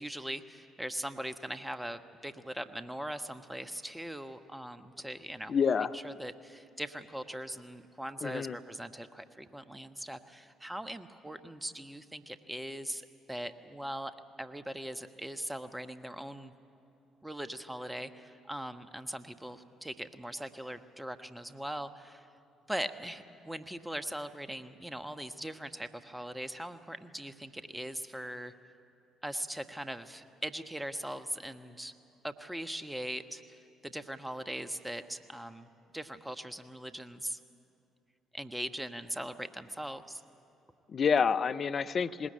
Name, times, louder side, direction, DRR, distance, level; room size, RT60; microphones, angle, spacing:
voice 1, 0.0-5.6 5.9-13.0 13.3-16.5 17.2-22.3 22.7-28.5 29.2-31.9 32.2-37.4 38.3-40.2, right 1 dB, 10° right, 9 dB, 1.2 m, -40 dB
voice 2, 5.5-6.0 8.2-8.6 40.9-42.3, left 6 dB, 45° left, 12 dB, 0.6 m, -28 dB
20.0 x 19.5 x 8.9 m, 2.8 s
figure-of-eight pair, 45°, 0 cm